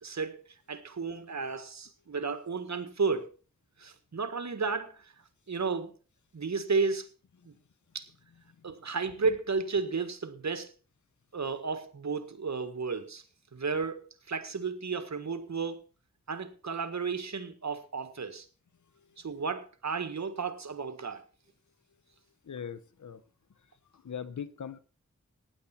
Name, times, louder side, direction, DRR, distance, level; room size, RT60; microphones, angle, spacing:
voice 1, 0.0-0.4 0.7-3.3 3.8-5.1 5.5-5.9 6.3-7.1 7.4-7.5 7.9-8.1 8.6-10.7 11.3-13.2 13.5-15.8 16.3-18.5 19.2-21.2, right 4 dB, 70° right, 1.7 m, -33 dB
voice 2, 22.5-23.2 24.0-24.8, left 7 dB, 80° left, 1.0 m, -40 dB
15.0 x 10.5 x 4.4 m
cardioid pair, 40°, 29 cm